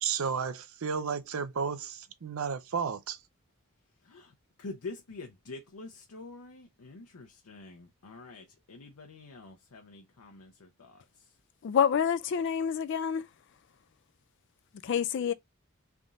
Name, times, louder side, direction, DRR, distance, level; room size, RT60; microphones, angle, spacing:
voice 1, 0.0-3.2, right 6 dB, 65° right, 0.5 m, -33 dB
voice 2, 4.0-11.3, left 3 dB, 85° left, 0.7 m, -46 dB
voice 3, 11.6-13.3 14.8-15.3, left 7 dB, 55° left, 0.3 m, -27 dB
3.5 x 2.5 x 4.0 m
head